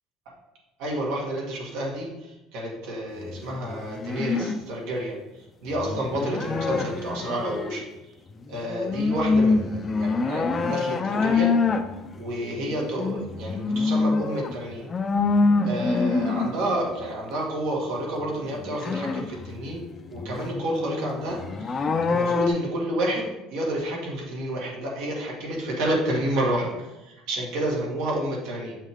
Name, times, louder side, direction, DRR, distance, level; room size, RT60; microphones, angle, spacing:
voice 1, 0.8-7.8 8.5-11.5 12.1-14.9 15.6-19.8 20.1-21.8 22.1-28.8, right 1 dB, 75° right, -2 dB, 1.8 m, -30 dB
sound 1, 3.3-4.6 5.7-7.8 8.3-17.0 18.2-22.5, left 4 dB, 20° left, 0.5 m, -26 dB
7.3 x 5.5 x 3.6 m, 1.0 s
cardioid pair, 150°, 0 cm